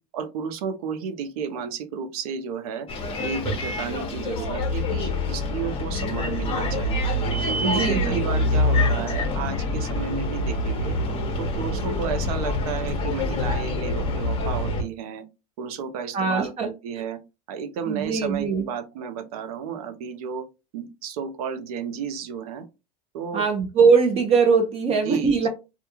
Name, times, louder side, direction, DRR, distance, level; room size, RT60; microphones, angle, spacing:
voice 1, 0.1-2.9 3.2-7.0 7.5-11.0 11.4-15.3 15.6-17.2 17.5-20.5 20.7-22.7 23.1-23.4 24.9-25.5, right 7 dB, 80° right, 0.6 m, -32 dB
Bus, 2.9-14.8, left 1 dB, 30° left, 0.8 m, -26 dB
voice 2, 7.6-8.2 16.1-16.7 17.9-18.7 23.3-25.5, right 5 dB, 30° right, 0.5 m, -21 dB
2.3 x 2.3 x 2.9 m
supercardioid pair, 120°, 19 cm